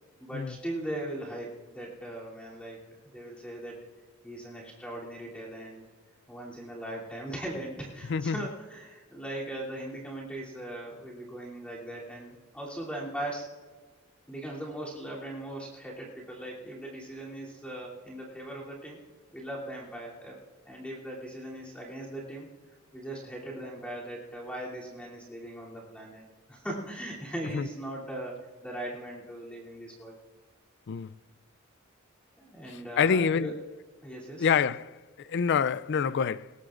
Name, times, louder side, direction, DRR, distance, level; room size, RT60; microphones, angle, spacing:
voice 1, 0.2-2.8 3.1-3.8 4.2-5.8 6.3-13.5 14.3-19.0 19.3-20.4 20.6-22.5 22.9-26.2 26.5-30.2 32.4-33.5 34.0-34.5, right 1 dB, 5° left, 3.0 m, -39 dB
voice 2, 32.7-33.5 34.4-36.5, left 6 dB, 55° left, 0.4 m, -27 dB
20.5 x 19.5 x 2.5 m
head